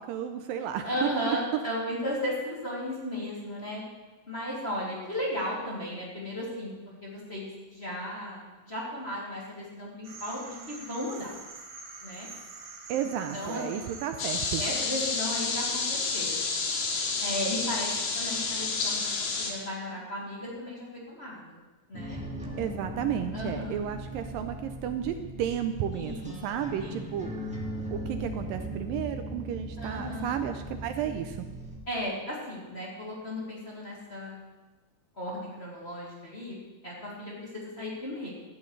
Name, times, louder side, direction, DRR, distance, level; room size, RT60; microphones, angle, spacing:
voice 1, 0.0-1.4 12.9-14.6 22.6-27.5 27.9-31.5, right 9 dB, 80° right, 7 dB, 2.2 m, -33 dB
voice 2, 0.8-3.8 4.3-6.8 7.0-11.3 12.0-12.3 13.3-13.6 14.6-16.3 17.2-19.1 19.4-21.6 21.9-22.2 23.3-23.8 25.9-26.4 26.8-27.0 29.8-30.4 31.9-34.4 35.2-36.6 36.8-38.3, left 1 dB, 20° left, -6 dB, 2.6 m, -35 dB
sound 1, 10.0-15.6, right 3 dB, 55° right, 2.5 m, -46 dB
sound 2, 14.2-19.5, left 4 dB, 85° left, 3.5 m, -30 dB
sound 3, 21.9-31.8, right 1 dB, 5° right, 0.8 m, -38 dB
17.0 x 13.0 x 3.3 m, 1.1 s
omnidirectional pair, 4.2 m